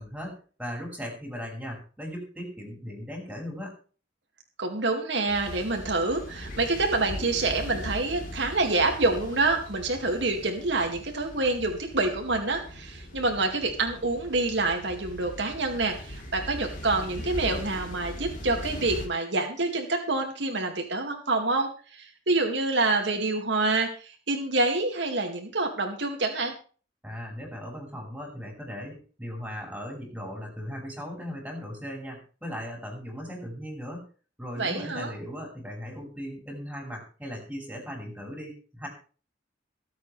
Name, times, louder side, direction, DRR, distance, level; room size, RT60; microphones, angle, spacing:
voice 1, 0.0-3.8 27.0-34.1 34.4-38.9, equal, 5° right, 0 dB, 6.1 m, -38 dB
voice 2, 4.6-26.5 34.6-35.1, right 3 dB, 70° right, 3 dB, 2.4 m, -27 dB
sound 1, 5.3-19.1, equal, 45° left, 4.0 m, -40 dB
23.5 x 8.1 x 3.4 m, 0.39 s
head